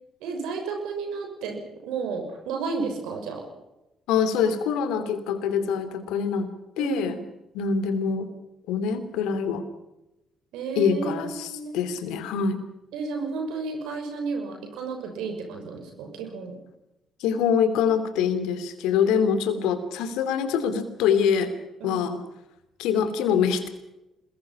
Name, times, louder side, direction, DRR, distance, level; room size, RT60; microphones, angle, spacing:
voice 1, 0.2-1.6 1.8-3.4 6.8-7.2 10.5-11.7 12.9-16.5 21.8-22.1, right 4 dB, 70° right, 3 dB, 6.3 m, -32 dB
voice 2, 4.1-7.2 7.5-8.3 8.7-9.7 10.8-12.6 17.2-21.6 21.8-22.2 22.8-23.7, left 7 dB, 70° left, 11 dB, 2.6 m, -25 dB
27.0 x 21.5 x 5.9 m, 0.94 s
hypercardioid pair, 45°, 0 cm